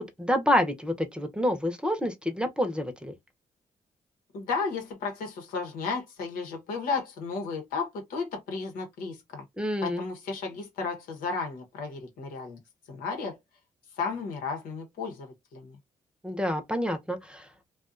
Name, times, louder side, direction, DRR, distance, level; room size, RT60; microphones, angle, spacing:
voice 1, 0.0-3.1 9.6-10.0 16.2-17.5, left 1 dB, 5° right, 0.7 m, -28 dB
voice 2, 4.3-9.4 9.8-12.6 12.9-13.4 14.0-15.8, left 4 dB, 90° left, 1.0 m, -33 dB
2.5 x 2.3 x 2.5 m
cardioid pair, 70°, 14 cm